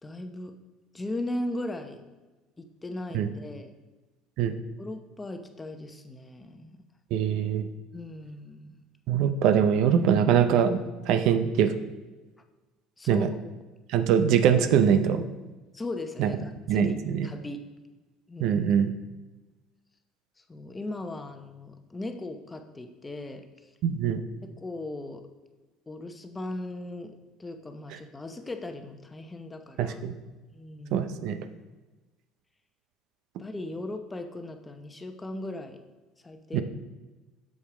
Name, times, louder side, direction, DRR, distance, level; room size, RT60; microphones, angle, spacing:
voice 1, 0.0-0.5 0.9-2.0 2.6-3.7 4.8-6.8 7.9-8.8 13.0-13.5 15.7-17.0 17.2-17.6 18.3-18.7 20.5-23.4 24.4-25.2 25.9-30.0 30.5-31.0 33.4-35.8 36.2-36.6, left 2 dB, 20° left, 6 dB, 0.9 m, -38 dB
voice 2, 7.1-7.7 9.1-11.7 13.1-13.3 13.9-15.2 16.2-16.3 16.7-17.3 18.4-18.9 23.8-24.2 29.8-30.1 30.9-31.4 36.5-36.6, right 8 dB, 65° right, 10 dB, 0.6 m, -23 dB
7.0 x 6.4 x 4.9 m, 1.2 s
supercardioid pair, 90°, 0 cm